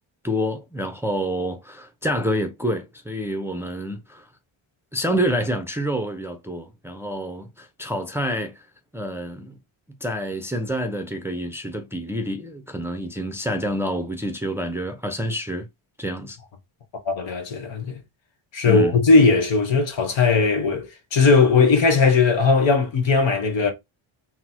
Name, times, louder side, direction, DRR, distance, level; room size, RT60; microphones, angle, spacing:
voice 1, 0.2-4.3 4.9-8.6 8.9-9.6 10.0-15.7 16.0-16.4 18.6-19.0, equal, 5° right, 0.5 m, -28 dB
voice 2, 17.1-18.0 18.5-23.7, left 4 dB, 65° left, 1.3 m, -18 dB
4.2 x 2.1 x 4.3 m
cardioid pair, 105°, 48 cm